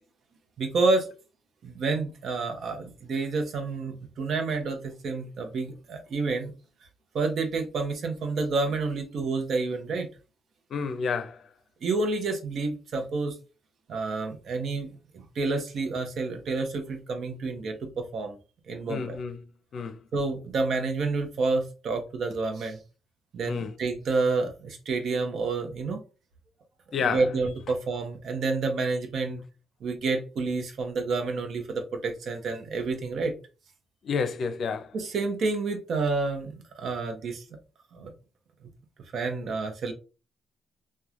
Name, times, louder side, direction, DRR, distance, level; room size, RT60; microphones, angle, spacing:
voice 1, 0.6-1.1 1.6-6.5 7.1-10.1 11.8-13.3 13.9-18.4 18.7-19.2 20.1-22.8 23.3-26.0 27.0-29.4 29.8-33.3 34.9-37.4 37.9-38.1 39.1-39.9, right 3 dB, 60° right, 0.8 m, -29 dB
voice 2, 10.7-11.4 18.9-19.4 19.7-19.9 23.5-23.7 26.9-27.2 34.0-34.9, left 5 dB, 60° left, 0.5 m, -29 dB
3.0 x 2.2 x 2.4 m
cardioid pair, 90°, 0 cm